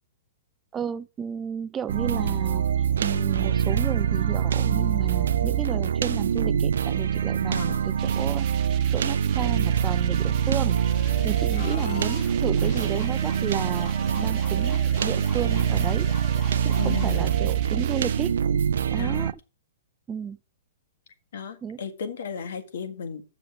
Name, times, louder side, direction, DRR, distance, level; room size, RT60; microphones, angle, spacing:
voice 1, 0.7-2.7 3.0-10.8 11.2-16.1 16.6-18.4 18.9-19.4 20.1-20.4 21.6-21.8, right 7 dB, 20° right, 0.4 m, -33 dB
sound 1, 1.9-19.3, right 8 dB, 70° right, 0.5 m, -24 dB
sound 2, 8.0-18.3, right 12 dB, 40° right, 0.9 m, -44 dB
sound 3, 10.2-17.3, left 6 dB, 35° left, 2.3 m, -43 dB
voice 2, 11.6-12.1 16.8-17.3 18.9-19.3 21.3-23.2, left 6 dB, 65° left, 1.7 m, -34 dB
7.6 x 6.8 x 6.1 m
hypercardioid pair, 120°, 0 cm